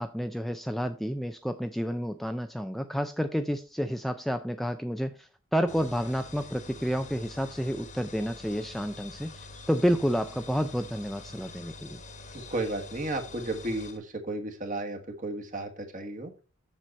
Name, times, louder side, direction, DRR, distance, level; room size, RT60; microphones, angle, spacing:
voice 1, 0.0-5.1 5.5-9.3 9.7-12.0, equal, ahead, 7 dB, 0.4 m, -30 dB
sound 1, 5.7-14.0, left 3 dB, 35° left, 1.3 m, -46 dB
voice 2, 12.5-16.3, right 2 dB, 35° right, 4 dB, 1.5 m, -33 dB
7.5 x 6.8 x 4.1 m, 0.35 s
head